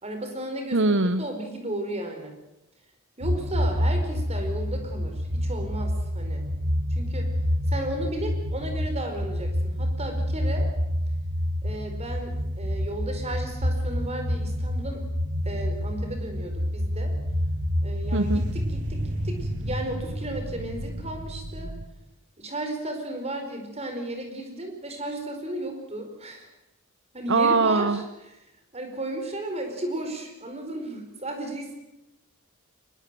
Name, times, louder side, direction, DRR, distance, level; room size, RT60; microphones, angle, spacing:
voice 1, 0.0-0.8 1.2-2.3 3.2-6.4 6.9-7.3 7.7-10.7 11.6-15.0 15.4-17.1 17.8-21.7 22.4-26.5 27.1-28.0 28.7-31.8, right 1 dB, 30° right, 5 dB, 4.8 m, -34 dB
voice 2, 0.7-1.2 18.1-18.4 27.3-28.0, right 3 dB, 55° right, 12 dB, 0.8 m, -21 dB
sound 1, 3.2-21.8, equal, 80° right, 2.3 m, -28 dB
23.0 x 21.5 x 7.8 m, 0.95 s
head